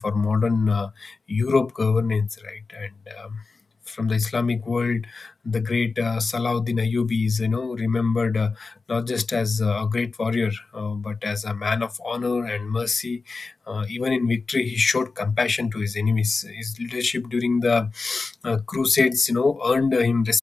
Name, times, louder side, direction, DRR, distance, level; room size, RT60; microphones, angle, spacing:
voice 1, 0.0-3.4 3.9-20.4, left 4 dB, 30° left, 1.4 m, -24 dB
cardioid pair, 90°, 0 cm